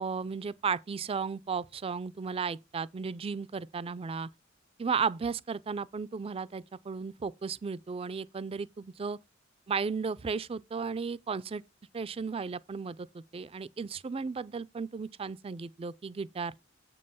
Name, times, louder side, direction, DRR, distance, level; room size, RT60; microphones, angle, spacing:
voice 1, 0.0-4.3 4.8-9.2 9.7-11.6 11.9-16.5, right 5 dB, 30° right, 0.4 m, -34 dB
7.5 x 5.3 x 5.4 m
head